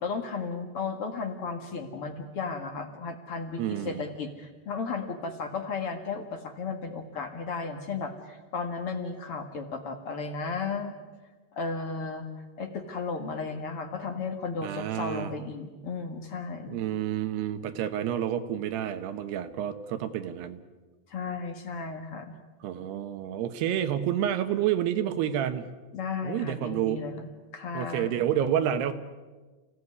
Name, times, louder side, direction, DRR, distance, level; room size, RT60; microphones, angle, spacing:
voice 1, 0.0-11.0 11.5-12.3 12.6-16.8 21.1-22.4 25.9-28.1, left 4 dB, 50° left, 5 dB, 1.9 m, -34 dB
voice 2, 3.6-4.0 14.6-15.3 16.7-20.6 22.6-25.7 26.2-27.0 27.7-28.9, right 10 dB, 70° right, 10 dB, 3.1 m, -29 dB
29.5 x 16.5 x 9.8 m, 1.3 s
omnidirectional pair, 5.1 m